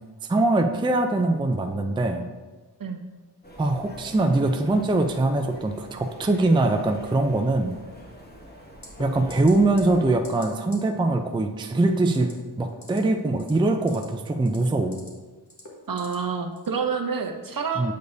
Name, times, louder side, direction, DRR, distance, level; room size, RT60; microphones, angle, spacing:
voice 1, 0.3-2.3 3.6-7.7 9.0-12.3 12.6-15.0 17.8-17.9, right 2 dB, 10° right, 4 dB, 0.4 m, -22 dB
sound 1, 3.4-10.2, equal, 25° left, 1.1 m, -45 dB
sound 2, 8.8-9.0 9.3-9.5 9.8-10.0 10.2-10.5 10.7-10.8 12.0-12.3 12.7-13.0 13.4-14.0 14.4-15.1 15.5-16.1 16.6-16.7, left 1 dB, 40° left, 1.3 m, -42 dB
voice 2, 15.9-17.9, right 5 dB, 55° right, 5 dB, 0.6 m, -28 dB
7.9 x 5.1 x 2.6 m, 1.3 s
wide cardioid pair, 60°, 42 cm